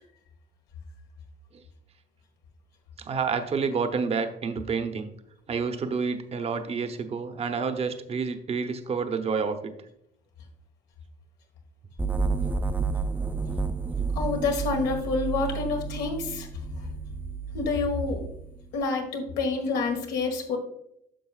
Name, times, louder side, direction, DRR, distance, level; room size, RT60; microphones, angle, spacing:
voice 1, 3.0-5.1 5.5-9.7, right 5 dB, 35° right, 7 dB, 0.8 m, -29 dB
sound 1, 12.0-18.8, right 4 dB, 10° right, 0.5 m, -31 dB
voice 2, 14.1-16.5 17.5-18.2 18.7-20.6, left 4 dB, 90° left, 2 dB, 1.6 m, -28 dB
10.0 x 6.4 x 2.4 m, 0.74 s
cardioid pair, 110°, 17 cm